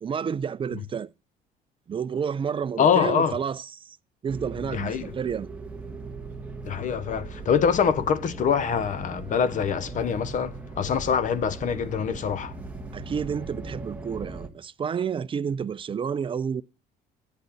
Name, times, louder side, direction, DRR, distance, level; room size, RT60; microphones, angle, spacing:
voice 1, 0.0-1.1 1.9-4.0 4.2-5.5 12.9-16.6, right 7 dB, 30° right, 0.5 m, -30 dB
voice 2, 2.8-3.4 4.7-5.1 6.6-12.5, left 7 dB, 50° left, 0.9 m, -24 dB
sound 1, 4.3-14.5, right 3 dB, 10° right, 1.5 m, -39 dB
10.5 x 8.2 x 4.1 m
cardioid pair, 110°, 17 cm